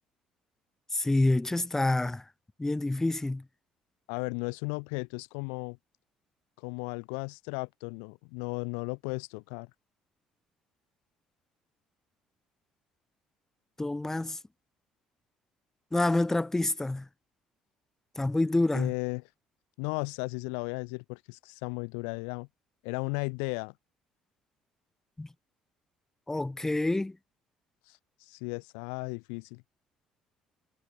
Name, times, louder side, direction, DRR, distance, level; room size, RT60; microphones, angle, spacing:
voice 1, 0.9-2.2 2.6-3.4 13.8-14.4 15.9-17.1 18.1-18.9 25.2-25.3 26.3-27.2, left 2 dB, 15° left, 5.1 m, -27 dB
voice 2, 4.1-5.8 6.6-9.7 18.7-19.2 19.8-22.5 22.8-23.7 27.9-28.0 28.3-29.6, left 40 dB or more, 80° left, 3.7 m, -35 dB
hypercardioid pair, 60°, 3 cm